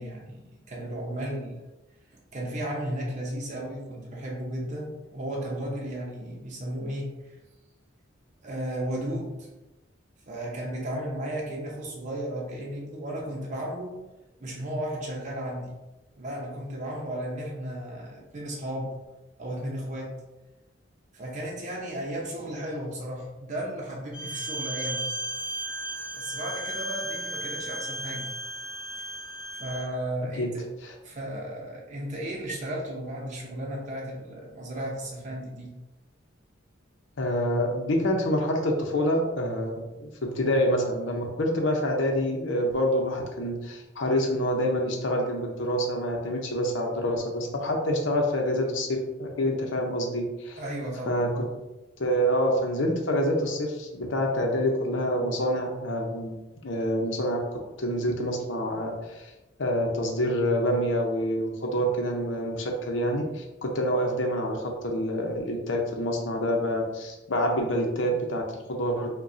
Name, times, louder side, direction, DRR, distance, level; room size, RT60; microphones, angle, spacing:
voice 1, 0.0-1.6 2.1-7.4 8.4-9.5 10.3-14.0 14.4-15.7 16.2-19.0 19.4-20.2 21.1-25.1 26.1-28.3 29.0-29.1 29.6-30.7 31.0-35.8 50.6-51.5, right 1 dB, 40° right, -3 dB, 0.7 m, -34 dB
Bowed string instrument, 24.1-29.9, right 1 dB, 30° left, 1.0 m, -35 dB
voice 2, 37.2-50.6 51.0-51.4 52.0-56.3 56.6-57.4 57.8-59.3 59.6-69.1, equal, 70° left, 1 dB, 0.8 m, -27 dB
5.1 x 2.3 x 2.7 m, 1.0 s
head